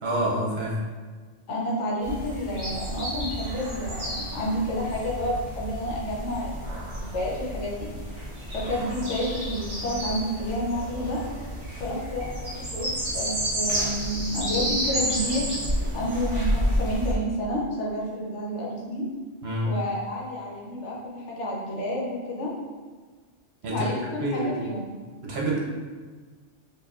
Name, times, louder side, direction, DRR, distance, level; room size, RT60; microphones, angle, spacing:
voice 1, 0.0-0.8 19.4-19.7 23.6-23.9 24.2-24.6 25.2-25.6, right 1 dB, 60° right, -3 dB, 0.9 m, -27 dB
voice 2, 1.5-7.9 8.5-11.2 11.8-15.5 15.9-19.1 19.6-22.5 23.7-24.9, equal, 70° left, -4 dB, 1.1 m, -30 dB
sound 1, 2.0-17.1, equal, 40° right, 1.3 m, -30 dB
4.5 x 2.6 x 2.4 m, 1.4 s
omnidirectional pair, 1.3 m